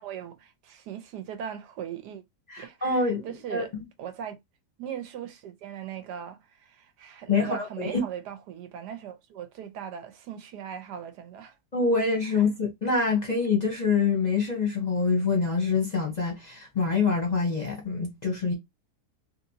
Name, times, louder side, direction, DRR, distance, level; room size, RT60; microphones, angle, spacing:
voice 1, 0.0-2.2 2.6-4.4 4.8-11.6 12.2-12.4, right 9 dB, 90° right, 1.3 m, -39 dB
voice 2, 2.5-3.8 7.3-8.0 11.7-18.5, left 4 dB, 35° left, 0.7 m, -26 dB
3.2 x 2.8 x 2.7 m
omnidirectional pair, 1.7 m